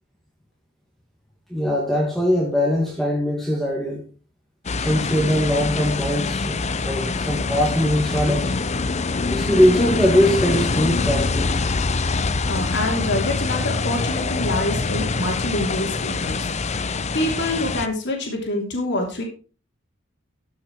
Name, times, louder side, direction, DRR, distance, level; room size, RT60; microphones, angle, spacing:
voice 1, 1.5-4.0 4.8-8.6 9.3-11.5, equal, ahead, 2.1 m, -21 dB
sound 1, 4.6-17.9, left 3 dB, 35° left, 0.7 m, -24 dB
voice 2, 12.5-19.2, left 1 dB, 60° left, 3.2 m, -26 dB
14.0 x 6.5 x 4.7 m
head